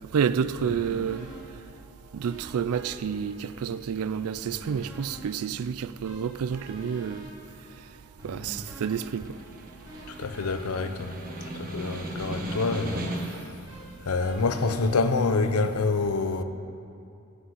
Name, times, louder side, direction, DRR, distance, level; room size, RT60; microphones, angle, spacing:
voice 1, 0.1-1.3 2.1-7.3 8.2-9.3, right 7 dB, 80° right, 0.4 m, -29 dB
sound 1, 0.6-15.8, right 1 dB, 15° right, 3.3 m, -46 dB
Snare drum, 8.6-13.5, right 1 dB, 40° right, 1.4 m, -37 dB
voice 2, 10.1-11.2 11.5-13.5 14.0-16.4, left 3 dB, 80° left, 0.7 m, -27 dB
9.9 x 8.4 x 8.1 m
head